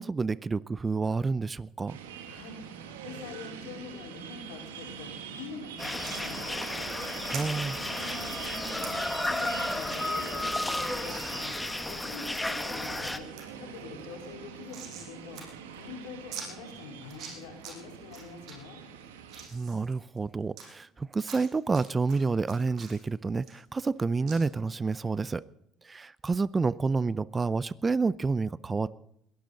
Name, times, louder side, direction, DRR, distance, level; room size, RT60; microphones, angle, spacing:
voice 1, 0.0-2.0 7.3-7.8 19.5-25.4 25.8-28.9, right 4 dB, 25° right, 21 dB, 0.5 m, -29 dB
sound 1, 1.9-19.5, right 7 dB, 90° right, 1.7 m, -44 dB
voice 2, 2.2-2.6 3.0-6.6 7.9-11.6 11.9-13.3 13.6-15.4 15.8-18.8, left 5 dB, 80° left, 2 dB, 4.5 m, -45 dB
sound 2, 5.8-13.2, left 1 dB, 10° left, 1.5 m, -33 dB
sound 3, 6.0-6.3 7.3-7.4 8.2-8.4 8.8-8.9 9.3-9.6 9.9-10.0 10.3-10.4 11.1-11.2 11.7-12.3 12.7-13.1 13.4-13.5 13.7-15.1 15.4-15.5 15.7-15.8 16.3-16.5 17.0-17.7 18.1-18.5 19.0-20.6 21.2-21.8 22.1-24.0 24.3-24.4, right 7 dB, 60° right, 6.3 m, -44 dB
22.0 x 11.5 x 4.0 m, 0.76 s
hypercardioid pair, 70°, 0 cm